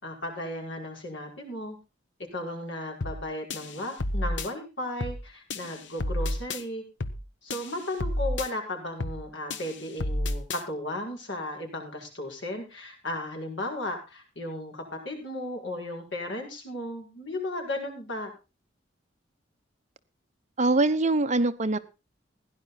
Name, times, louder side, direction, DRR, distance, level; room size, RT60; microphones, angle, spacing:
voice 1, 0.0-1.8 2.3-6.8 7.4-18.3, left 1 dB, 90° left, 5.5 m, -35 dB
sound 1, 3.0-3.2 3.5-4.5 5.0-5.2 5.5-6.6 7.0-7.2 7.5-8.5 9.0-9.2 9.5-10.6, left 1 dB, 70° left, 1.1 m, -31 dB
voice 2, 20.6-21.8, right 2 dB, 40° right, 0.9 m, -23 dB
16.5 x 11.0 x 4.1 m
head